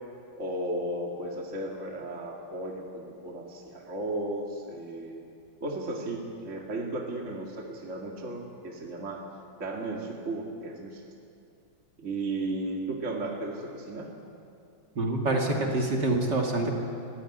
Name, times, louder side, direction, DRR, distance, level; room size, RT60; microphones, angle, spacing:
voice 1, 0.4-5.2 5.6-9.3 9.6-11.0 12.0-14.1, right 2 dB, 35° right, 0 dB, 2.2 m, -35 dB
voice 2, 15.0-16.7, right 2 dB, 55° right, 0 dB, 3.1 m, -26 dB
23.5 x 15.0 x 9.6 m, 2.6 s
omnidirectional pair, 2.3 m